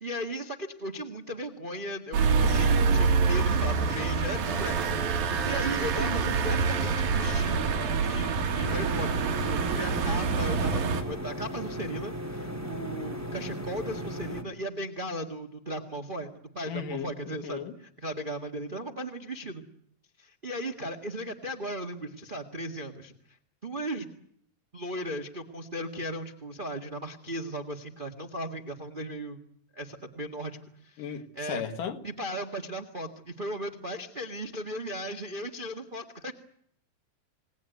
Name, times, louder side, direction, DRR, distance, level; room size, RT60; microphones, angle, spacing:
voice 1, 0.0-7.8 8.0-19.6 20.2-23.1 23.6-24.1 24.7-29.4 29.7-30.6 30.8-31.6 32.0-36.3, right 1 dB, 35° right, 0.8 m, -37 dB
sound 1, 2.1-11.0, right 5 dB, 85° right, 3.9 m, -26 dB
voice 2, 5.8-6.4 16.7-17.8 31.0-32.0, left 7 dB, 70° left, 3.2 m, -36 dB
sound 2, 8.6-14.4, equal, 5° right, 1.8 m, -36 dB
28.5 x 18.0 x 9.4 m
omnidirectional pair, 4.0 m